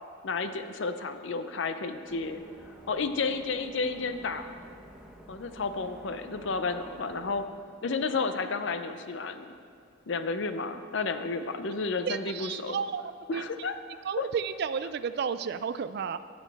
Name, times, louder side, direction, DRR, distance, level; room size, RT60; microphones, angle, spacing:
voice 1, 0.2-2.4 2.9-4.5 5.3-7.5 7.8-9.5 10.1-12.8 13.3-13.8 14.2-14.3, left 4 dB, 65° left, 9 dB, 0.5 m, -31 dB
sound 1, 2.1-7.5, equal, 5° right, 0.7 m, -50 dB
voice 2, 12.1-13.0 13.3-13.4 14.1-16.2, right 6 dB, 55° right, 13 dB, 0.3 m, -32 dB
17.0 x 6.3 x 3.4 m, 2.5 s
head